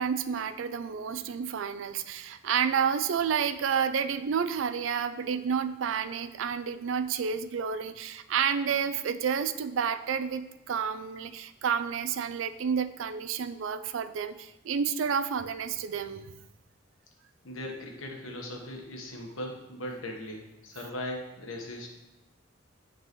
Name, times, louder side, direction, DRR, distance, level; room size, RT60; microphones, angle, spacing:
voice 1, 0.0-16.3, right 7 dB, 70° right, 12 dB, 0.4 m, -30 dB
voice 2, 17.4-21.9, left 1 dB, 85° left, 1 dB, 1.2 m, -39 dB
9.3 x 3.8 x 3.1 m, 1.0 s
head